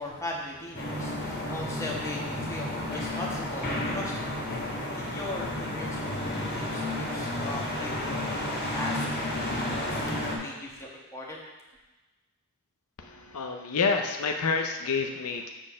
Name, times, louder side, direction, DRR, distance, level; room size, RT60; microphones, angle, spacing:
voice 1, 0.0-4.3 4.9-9.1 10.2-11.4, left 2 dB, 15° left, -3 dB, 1.5 m, -38 dB
sound 1, 0.7-10.4, left 1 dB, 45° left, 2.1 m, -32 dB
voice 2, 13.0-15.5, left 4 dB, 80° left, 4 dB, 0.7 m, -28 dB
7.8 x 4.3 x 6.2 m, 1.1 s
head